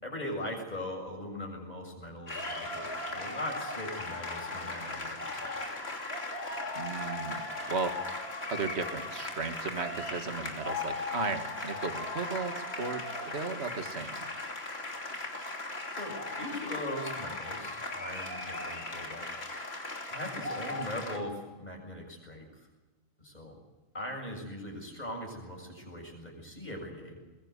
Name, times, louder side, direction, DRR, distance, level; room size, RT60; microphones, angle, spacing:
voice 1, 0.0-5.5 15.9-19.3 20.1-22.5 23.2-23.6 23.9-27.2, left 1 dB, 30° left, 1 dB, 7.6 m, -40 dB
sound 1, 2.3-21.2, left 2 dB, 50° left, 3.3 m, -37 dB
voice 2, 6.8-7.4 7.7-8.0 8.5-14.2, right 4 dB, 55° right, 7 dB, 2.1 m, -35 dB
22.0 x 22.0 x 8.1 m, 1.2 s
omnidirectional pair, 1.4 m